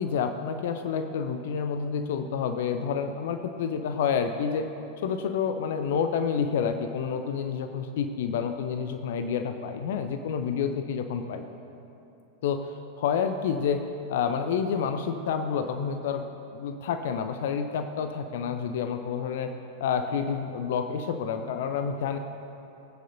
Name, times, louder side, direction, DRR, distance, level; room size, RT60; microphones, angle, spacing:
voice 1, 0.0-4.7 5.0-11.4 12.4-13.8 14.1-16.2 16.5-19.5 19.8-22.2, left 6 dB, 55° left, 7 dB, 0.5 m, -29 dB
19.5 x 9.1 x 2.7 m, 2.8 s
figure-of-eight pair, 90°, 0 cm